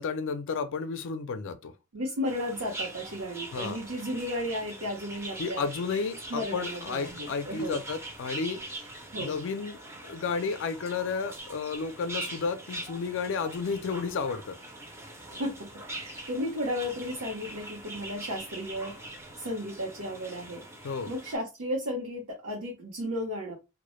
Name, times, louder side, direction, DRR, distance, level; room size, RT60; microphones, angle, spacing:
voice 1, 0.0-1.7 3.5-3.8 5.4-8.6 9.2-14.6 20.8-21.1, left 5 dB, 60° left, 0.4 m, -32 dB
voice 2, 1.9-5.6 6.3-7.8 9.1-9.3 15.2-15.5 15.8-18.9 19.4-20.6 21.1-23.6, equal, 80° right, 0.7 m, -34 dB
sound 1, 2.3-21.4, right 2 dB, 10° right, 0.4 m, -42 dB
2.1 x 2.0 x 2.9 m
head